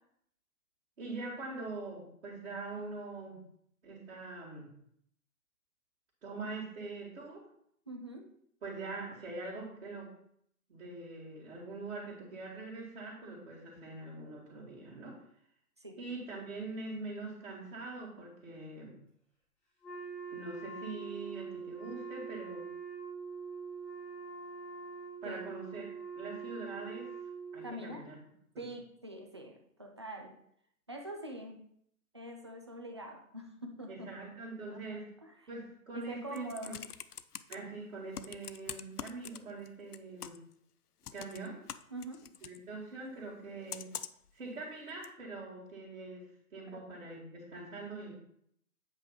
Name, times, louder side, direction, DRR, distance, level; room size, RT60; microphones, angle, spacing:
voice 1, 1.0-3.4 3.8-4.7 6.2-7.5 8.6-10.1 10.7-15.2 16.0-19.0 20.3-22.7 25.2-25.9 26.1-27.1 27.5-28.2 28.5-28.7 33.9-35.1 35.5-36.8 37.5-40.4 41.1-41.6 42.4-43.9 44.3-48.1, right 3 dB, 50° right, -6 dB, 2.2 m, -43 dB
voice 2, 7.9-8.3 15.8-16.0 25.2-25.4 27.6-28.1 28.6-30.4 30.9-31.7 32.1-34.1 34.7-35.5 35.9-36.8 41.9-42.3 46.7-46.9, right 1 dB, 20° right, 2 dB, 0.4 m, -44 dB
Wind instrument woodwind instrument, 19.8-27.8, right 5 dB, 5° left, 1.0 m, -44 dB
Computer keyboard, 36.1-37.6 38.1-39.7 39.9-40.5 41.0-42.6 43.7-44.3 45.0-45.1, left 9 dB, 85° left, 0.5 m, -43 dB
8.1 x 3.3 x 5.6 m, 0.69 s
figure-of-eight pair, 125°, 44 cm